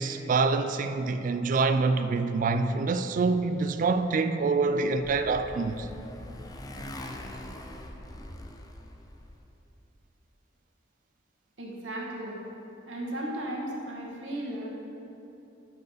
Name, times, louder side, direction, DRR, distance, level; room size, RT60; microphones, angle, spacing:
voice 1, 0.0-5.9, right 4 dB, 45° right, 0.3 m, -26 dB
Motorcycle, 4.4-9.5, left 1 dB, 20° left, 0.5 m, -43 dB
voice 2, 11.6-12.4 12.9-14.7, right 1 dB, 90° right, 1.5 m, -35 dB
12.5 x 4.7 x 4.9 m
head